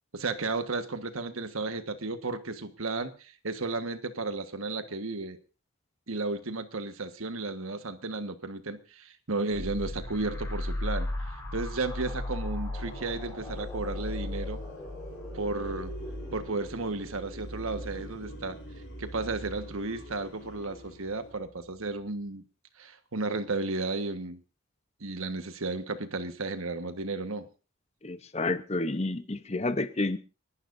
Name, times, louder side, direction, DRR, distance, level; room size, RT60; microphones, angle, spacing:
voice 1, 0.1-5.4 6.1-11.1 11.5-14.6 15.3-15.9 16.3-18.6 19.0-22.4 22.8-24.4 25.0-27.5, right 3 dB, 85° right, 1.5 m, -33 dB
sound 1, 9.5-20.9, left 1 dB, 15° left, 4.4 m, -37 dB
sound 2, 12.8-21.3, left 1 dB, 70° left, 7.1 m, -49 dB
voice 2, 28.0-30.2, left 2 dB, 30° left, 0.8 m, -30 dB
30.0 x 11.5 x 2.7 m
head